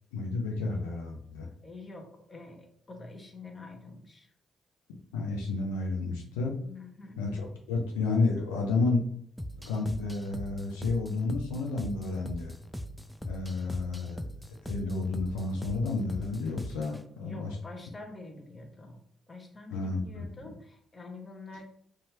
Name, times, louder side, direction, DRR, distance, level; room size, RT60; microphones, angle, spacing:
voice 1, 0.1-1.5 5.1-6.6 7.2-9.0 9.7-12.5 13.2-14.3 14.6-17.6 19.7-20.3, left 3 dB, 80° left, 0 dB, 0.4 m, -31 dB
voice 2, 1.6-4.3 6.6-7.2 17.2-19.0 19.3-21.6, left 3 dB, 30° left, 3 dB, 0.7 m, -46 dB
Sicily House Bass, 9.4-17.1, equal, ahead, 0.3 m, -41 dB
2.7 x 2.3 x 2.9 m, 0.65 s
hypercardioid pair, 45°, 0 cm